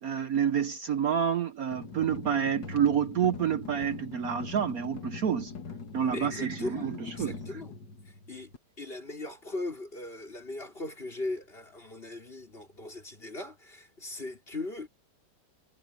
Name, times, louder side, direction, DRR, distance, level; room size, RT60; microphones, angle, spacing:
voice 1, 0.0-5.5 5.9-6.9 7.2-7.4, right 8 dB, 60° right, 1.2 m, -28 dB
sound 1, 1.7-8.6, left 5 dB, 80° left, 2.7 m, -42 dB
voice 2, 6.0-7.8 8.0-14.9, left 2 dB, 30° left, 4.9 m, -39 dB
omnidirectional pair, 1.9 m